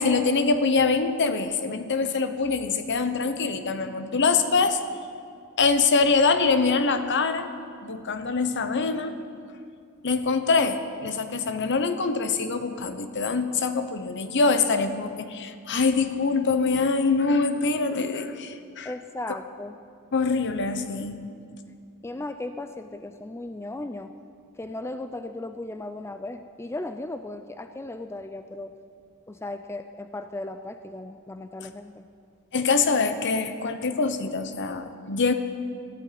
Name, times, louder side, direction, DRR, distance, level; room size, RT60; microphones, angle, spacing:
voice 1, 0.0-4.8 5.6-7.5 7.8-9.1 10.0-18.9 20.1-21.3 32.5-35.3, left 4 dB, 55° left, 9 dB, 0.9 m, -24 dB
voice 2, 18.8-19.8 22.0-24.1 24.6-28.7 29.3-32.1, left 2 dB, 10° left, 8 dB, 0.4 m, -36 dB
14.0 x 8.9 x 9.9 m, 2.3 s
head